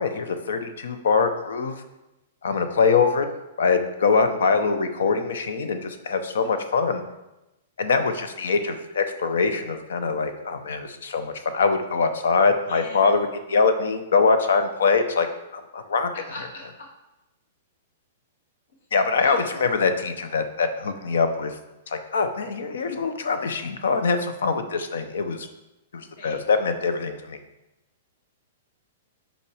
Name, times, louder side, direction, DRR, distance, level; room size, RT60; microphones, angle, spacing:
voice 1, 0.0-1.7 2.4-3.3 3.6-7.0 7.8-15.3 15.5-16.1 18.9-21.6 21.9-25.5 25.9-27.4, left 4 dB, 90° left, 9 dB, 0.8 m, -23 dB
voice 2, 12.7-13.1 16.3-16.9 19.2-19.4 26.2-26.4, left 1 dB, 70° left, -2 dB, 2.2 m, -40 dB
5.7 x 4.3 x 4.9 m, 0.96 s
hypercardioid pair, 165°, 0 cm